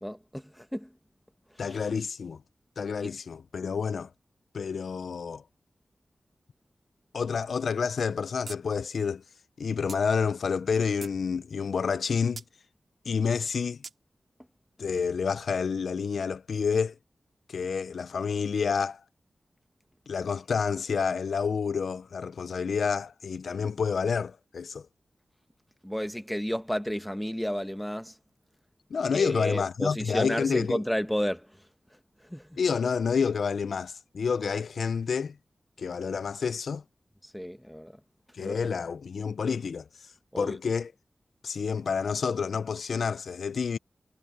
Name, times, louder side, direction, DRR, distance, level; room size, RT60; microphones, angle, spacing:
voice 1, 0.0-0.9 1.6-1.8 3.0-3.1 25.8-28.2 29.1-31.6 32.2-32.6 37.2-38.0 38.4-38.7 40.3-40.6, equal, 5° left, 1.1 m, -32 dB
voice 2, 1.6-2.4 2.8-4.1 4.5-5.4 7.1-9.2 9.6-12.4 13.1-13.8 14.8-17.0 17.5-19.0 20.1-24.9 28.9-30.8 32.6-35.4 35.8-36.8 38.3-40.9 41.4-43.8, left 6 dB, 90° left, 0.4 m, -29 dB
sound 1, 8.5-8.6 8.9-9.0 9.9-10.0 10.6-11.2 12.4-12.5 13.8-14.0, right 4 dB, 65° right, 3.3 m, -42 dB
wide cardioid pair, 95°, 0 cm